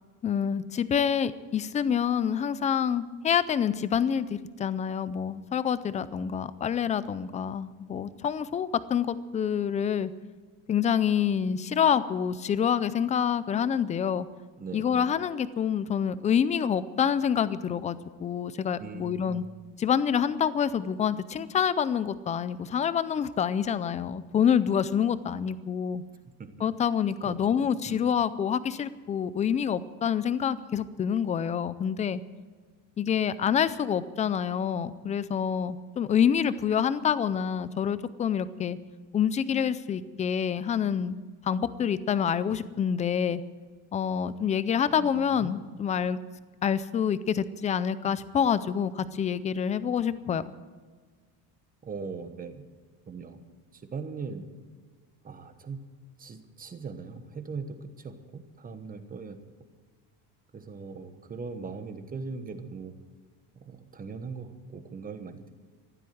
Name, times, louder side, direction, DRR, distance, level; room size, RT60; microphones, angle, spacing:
voice 1, 0.2-10.1 10.7-14.3 14.7-19.4 19.8-26.0 26.6-32.2 33.0-38.8 39.1-41.2 41.5-43.4 43.9-46.2 46.6-50.4, left 8 dB, 20° left, 15 dB, 0.4 m, -27 dB
voice 2, 14.6-15.1 18.8-19.4 26.2-26.7 27.2-27.4 27.9-28.0 44.9-45.5 51.8-52.7 53.1-53.4 53.7-54.4 55.2-55.9 56.2-59.4 60.5-62.9 63.5-65.5, right 5 dB, 20° right, 8 dB, 1.2 m, -40 dB
15.0 x 12.0 x 7.7 m, 1.5 s
cardioid pair, 165°, 42 cm